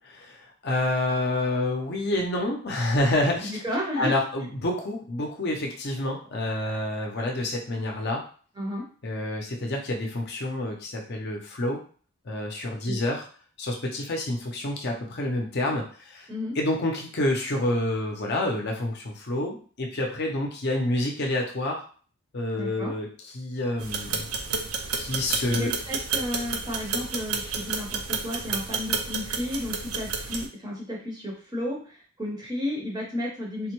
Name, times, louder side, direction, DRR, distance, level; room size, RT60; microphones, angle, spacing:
voice 1, 0.2-3.5 4.0-8.2 9.0-11.8 12.2-13.2 13.6-16.3 16.6-21.8 22.3-24.2 25.0-25.7, left 1 dB, 45° left, 1 dB, 0.6 m, -28 dB
voice 2, 3.4-4.1 8.6-8.9 12.8-13.0 16.3-16.6 22.6-22.9 25.4-33.7, left 1 dB, 20° right, -3 dB, 0.7 m, -32 dB
sound 1, 23.8-30.5, right 5 dB, 80° right, 0.5 m, -31 dB
3.5 x 2.1 x 3.0 m, 0.42 s
head